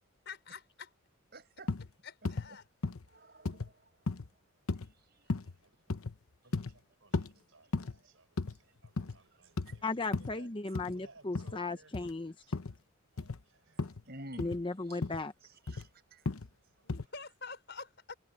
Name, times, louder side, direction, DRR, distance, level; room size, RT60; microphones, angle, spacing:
voice 1, 0.2-0.9 2.0-2.7 16.8-18.1, left 5 dB, 55° left, 6.0 m, -47 dB
voice 2, 1.3-1.7 3.1-3.7 7.4-7.5 9.7-9.8 14.1-14.5 14.9-15.0 15.7-16.2, right 1 dB, 50° right, 5.3 m, -49 dB
sound 1, 1.7-1.9 2.2-2.5 2.8-3.0 3.4-3.7 4.1-4.3 4.7-4.9 5.3-5.5 5.9-6.1 6.5-6.7 7.1-7.3 7.7-8.0 8.4-8.6 8.8-9.2 9.6-9.8 10.1-10.3 10.7-10.9 11.3-11.6 11.9-12.1 12.5-12.8 13.2-13.4 13.8-14.0 14.4-14.6 15.0-15.2 15.7-15.9 16.3-16.5 16.9-17.0, left 3 dB, 90° left, 0.9 m, -35 dB
voice 3, 6.4-11.9 12.2-12.8 13.1-13.8 16.8-16.9, right 3 dB, 75° right, 4.8 m, -63 dB
voice 4, 9.8-12.3 14.4-15.3, left 3 dB, 25° left, 0.7 m, -36 dB
head